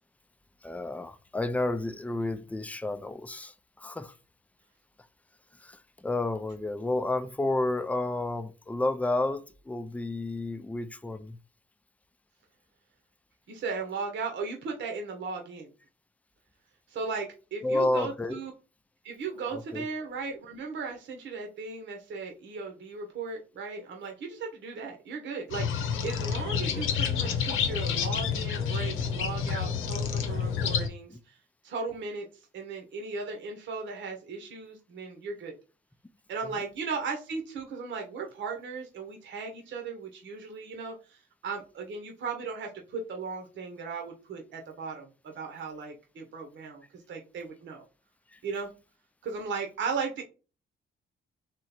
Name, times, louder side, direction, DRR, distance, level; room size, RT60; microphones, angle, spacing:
voice 1, 0.6-4.1 5.6-11.4 17.6-18.4 19.5-19.9 31.1-31.2 36.4-36.6 48.3-48.4, left 2 dB, 5° left, 0.4 m, -31 dB
voice 2, 13.5-15.7 16.9-18.5 19.0-31.4 31.6-32.3 32.5-35.6 36.3-47.8 48.4-48.7 49.2-50.2, right 4 dB, 70° right, 1.1 m, -37 dB
sound 1, 25.5-30.9, left 7 dB, 85° left, 0.9 m, -29 dB
3.7 x 3.1 x 4.3 m
cardioid pair, 90°, 20 cm